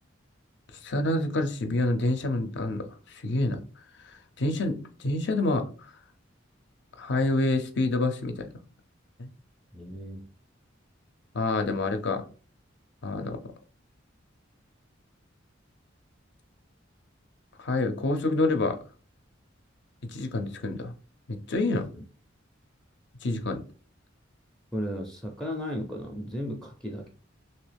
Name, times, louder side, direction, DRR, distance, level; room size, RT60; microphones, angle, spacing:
voice 1, 0.8-3.6 4.1-5.7 7.0-8.5 9.2-9.3 11.3-12.2 13.0-13.4 17.6-18.8 20.1-20.9 21.3-21.8 23.2-23.6, left 2 dB, 60° left, 6 dB, 0.5 m, -27 dB
voice 2, 9.7-10.2 21.9-22.0 24.7-27.1, equal, 5° left, 2 dB, 0.4 m, -35 dB
3.1 x 2.8 x 3.3 m, 0.39 s
head